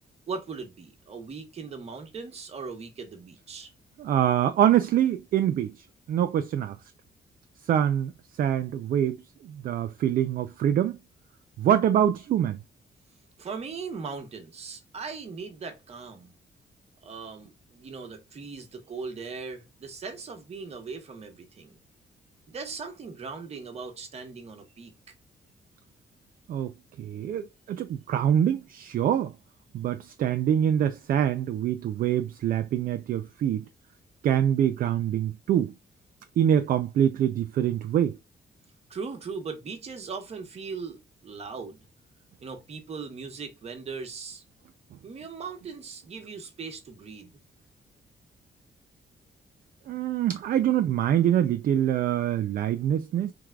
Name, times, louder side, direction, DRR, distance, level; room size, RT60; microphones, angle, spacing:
voice 1, 0.3-3.7 13.4-16.3 17.0-21.8 22.5-24.9 38.9-41.8 42.4-44.4 45.0-47.3, right 5 dB, 40° right, 1.1 m, -39 dB
voice 2, 4.0-6.8 7.7-8.1 8.4-9.2 9.4-11.0 11.6-12.6 26.5-29.3 29.7-33.7 34.2-35.7 36.4-38.2 49.9-53.3, right 10 dB, 55° right, 0.4 m, -25 dB
4.6 x 3.5 x 2.3 m
wide cardioid pair, 175°, 17 cm